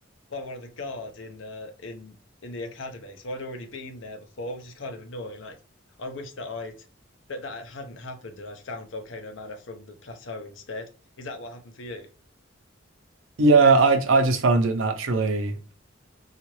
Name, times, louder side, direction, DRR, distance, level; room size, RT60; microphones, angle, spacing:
voice 1, 0.3-2.2 2.4-5.6 6.0-6.8 7.3-10.9 11.2-12.1, left 2 dB, 70° left, 0.6 m, -38 dB
voice 2, 13.4-15.7, right 3 dB, 80° right, 0.6 m, -19 dB
3.8 x 2.4 x 3.0 m
head